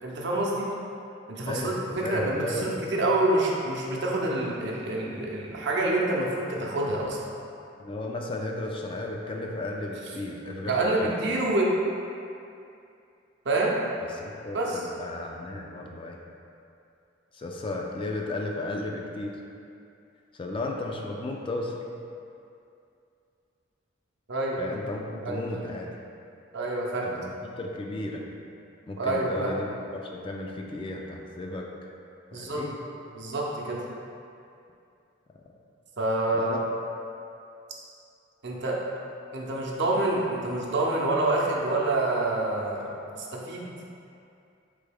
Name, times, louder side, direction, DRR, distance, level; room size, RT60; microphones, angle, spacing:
voice 1, 0.0-0.7 1.3-7.2 10.7-11.7 13.4-13.7 14.5-14.8 24.3-24.6 25.2-25.4 26.5-27.1 29.0-29.5 32.3-32.6 33.2-33.8 36.0-36.6 38.4-38.8 39.3-42.9 43.2-43.7, right 2 dB, 65° right, -2 dB, 0.7 m, -27 dB
voice 2, 1.4-1.7 2.0-2.9 7.8-11.3 14.0-16.2 17.3-19.4 20.3-21.8 24.6-25.9 27.0-28.3 28.9-31.7 32.3-32.8 36.3-36.6, left 2 dB, 25° left, 0 dB, 0.3 m, -34 dB
4.4 x 3.3 x 3.4 m, 2.6 s
head